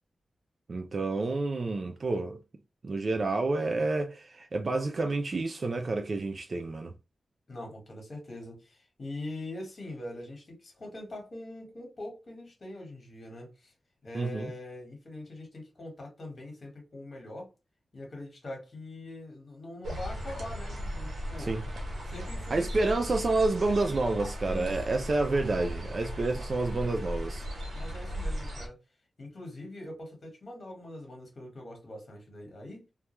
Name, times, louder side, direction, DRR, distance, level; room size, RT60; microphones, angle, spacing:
voice 1, 0.7-2.4 2.8-6.9 14.1-14.5 21.4-21.6 22.5-27.4, right 3 dB, 45° right, 0.3 m, -29 dB
voice 2, 7.5-13.7 14.0-17.5 17.9-21.6 22.0-23.0 24.4-25.1 27.7-28.8 29.2-32.9, left 1 dB, 45° left, 1.1 m, -43 dB
sound 1, 19.8-28.7, equal, 70° right, 1.0 m, -36 dB
2.3 x 2.2 x 2.9 m
wide cardioid pair, 115°, 0 cm